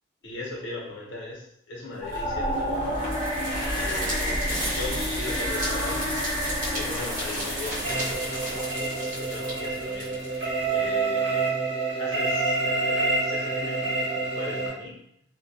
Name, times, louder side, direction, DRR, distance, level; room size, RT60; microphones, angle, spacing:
voice 1, 0.2-6.2 6.7-11.6 12.0-15.0, left 3 dB, 80° left, -3 dB, 0.8 m, -39 dB
sound 1, 2.0-9.1, equal, 20° left, 0.7 m, -30 dB
sound 2, 2.1-10.9, equal, 45° right, 0.9 m, -34 dB
sound 3, 7.8-14.7, right 3 dB, 80° right, 1.1 m, -27 dB
2.2 x 2.1 x 2.7 m, 0.74 s
head